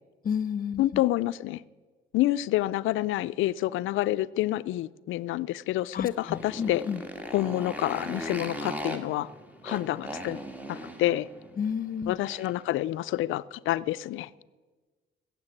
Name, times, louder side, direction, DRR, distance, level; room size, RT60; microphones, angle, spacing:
voice 1, 0.2-0.8 5.9-7.0 11.6-12.2, left 7 dB, 45° left, 0.8 m, -31 dB
voice 2, 0.8-1.6 2.1-6.8 7.3-9.3 9.6-10.4 10.7-11.3 12.1-14.3, left 15 dB, 80° left, 0.4 m, -28 dB
Motorcycle, 6.1-12.7, equal, 10° right, 1.6 m, -39 dB
15.5 x 7.3 x 9.0 m
cardioid pair, 90°, 20 cm